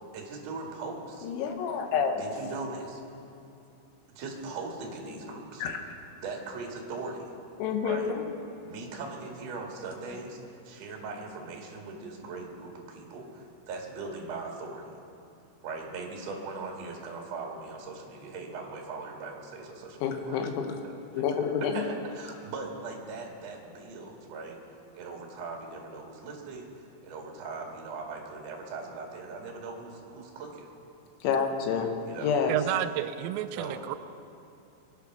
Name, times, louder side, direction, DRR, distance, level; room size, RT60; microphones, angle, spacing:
voice 1, 0.1-1.3 2.2-3.0 4.1-5.7 6.2-7.3 7.8-8.1 8.6-14.9 15.6-20.4 20.8-20.9 21.4-24.6 24.9-30.7 32.1-32.4 33.6-33.8, right 3 dB, 50° right, 0 dB, 2.1 m, -40 dB
voice 2, 1.2-2.2 5.6-5.8 7.6-8.2 20.0-20.8 21.1-21.7 31.2-31.9 32.2-32.6, left 6 dB, 75° left, 5 dB, 3.3 m, -28 dB
voice 3, 32.5-34.0, right 13 dB, 85° right, 11 dB, 3.0 m, -30 dB
22.0 x 8.5 x 6.0 m, 2.7 s
omnidirectional pair, 5.7 m